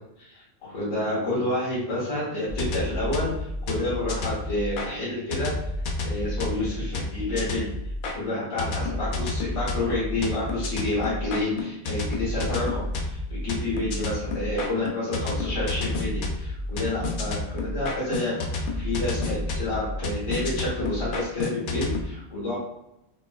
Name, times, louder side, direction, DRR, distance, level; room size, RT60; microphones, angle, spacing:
voice 1, 0.2-5.5 6.0-7.7 8.1-22.6, left 1 dB, 75° left, -9 dB, 1.7 m, -29 dB
sound 1, 2.5-4.9 5.3-8.1 8.6-22.0, left 2 dB, 60° left, 0.5 m, -30 dB
3.8 x 2.4 x 2.3 m, 0.84 s
omnidirectional pair, 1.3 m